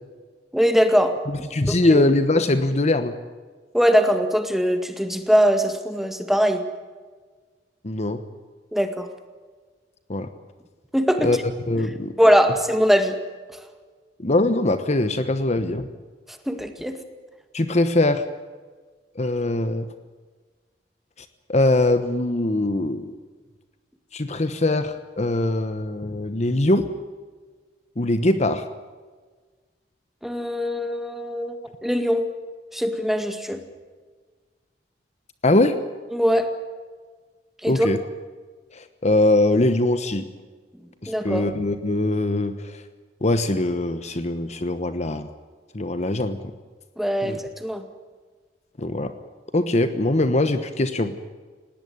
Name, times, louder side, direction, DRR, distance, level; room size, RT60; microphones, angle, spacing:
voice 1, 0.5-1.1 1.7-2.0 3.7-6.6 8.7-9.1 10.9-11.3 12.2-13.2 16.5-17.0 30.2-31.6 31.8-32.3 32.7-33.6 36.1-36.5 37.6-37.9 41.1-41.5 47.0-47.8, equal, ahead, 7 dB, 2.0 m, -21 dB
voice 2, 1.3-3.1 7.8-8.2 10.1-10.3 11.2-11.4 11.7-12.1 14.2-15.9 17.5-18.2 19.2-19.8 21.5-23.1 24.1-26.9 28.0-28.6 35.4-35.7 37.7-38.0 38.7-40.3 41.0-42.5 43.2-45.3 45.7-46.4 47.2-47.4 48.8-49.1 49.5-51.1, left 2 dB, 40° left, 10 dB, 1.1 m, -22 dB
19.5 x 18.0 x 9.4 m, 1.4 s
head